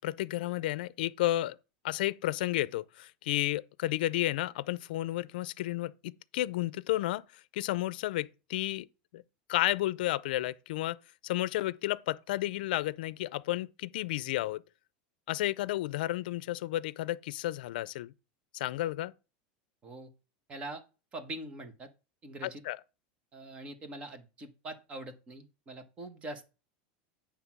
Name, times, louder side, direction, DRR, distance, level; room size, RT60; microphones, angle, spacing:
voice 1, 0.0-1.6 1.8-7.2 7.5-8.9 9.1-9.2 9.5-11.0 11.2-14.6 15.3-18.1 18.5-19.1 22.4-22.8, left 15 dB, 75° left, 0.5 m, -32 dB
voice 2, 20.5-20.8 21.1-21.9 22.2-22.6 23.3-26.5, right 2 dB, 20° right, 1.2 m, -43 dB
9.5 x 3.4 x 6.0 m
supercardioid pair, 160°, 5 cm